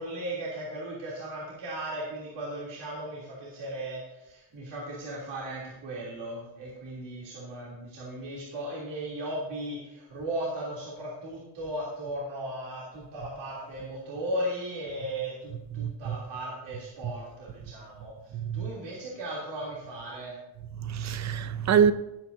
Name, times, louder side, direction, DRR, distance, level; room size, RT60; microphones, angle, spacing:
voice 1, 0.0-20.4, right 1 dB, 55° right, 3.3 m, -36 dB
voice 2, 15.8-16.1 18.3-18.7 20.8-21.9, right 7 dB, 35° right, 0.6 m, -25 dB
18.0 x 8.7 x 2.7 m
cardioid pair, 145°, 50 cm